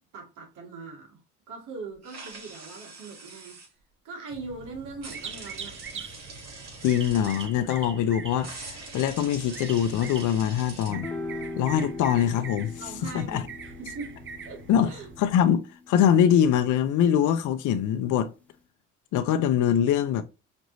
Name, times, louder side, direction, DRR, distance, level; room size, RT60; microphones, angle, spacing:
voice 1, 0.1-1.2 1.5-3.6 4.0-6.2 12.8-14.2 14.5-15.1, right 4 dB, 85° right, 1.9 m, -41 dB
sound 1, 2.0-3.7 5.0-7.5 8.4-10.9, right 3 dB, 55° right, 2.5 m, -44 dB
sound 2, 4.3-15.4, right 6 dB, 40° right, 0.9 m, -43 dB
voice 2, 6.8-11.1 11.6-12.7 13.0-13.4 14.7-14.9 15.2-15.6 15.9-18.3 19.1-20.2, left 9 dB, 80° left, 0.5 m, -23 dB
sound 3, 10.9-17.4, left 3 dB, 5° left, 0.7 m, -41 dB
5.2 x 3.0 x 2.5 m
cardioid pair, 90°, 30 cm